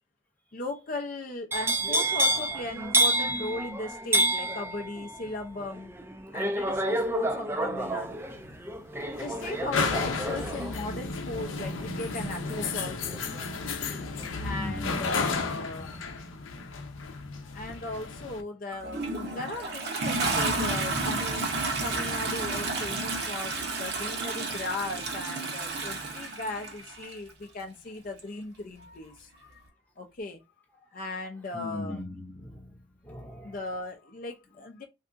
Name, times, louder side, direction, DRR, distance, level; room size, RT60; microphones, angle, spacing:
voice 1, 0.5-5.9 6.3-8.2 9.2-13.2 14.3-16.1 17.4-29.6 30.0-30.4 30.9-32.0 33.4-34.8, left 2 dB, 45° left, 0.5 m, -37 dB
sound 1, 1.5-13.5 13.8-14.2, right 1 dB, 10° right, 0.4 m, -29 dB
sound 2, 7.8-18.4, left 4 dB, 85° left, 0.6 m, -33 dB
voice 2, 14.4-15.4 31.5-32.8 33.0-33.6, left 2 dB, 10° left, 0.8 m, -39 dB
Toilet flush, 18.7-27.1 28.2-28.3, right 3 dB, 55° right, 0.9 m, -31 dB
3.5 x 2.7 x 2.5 m
head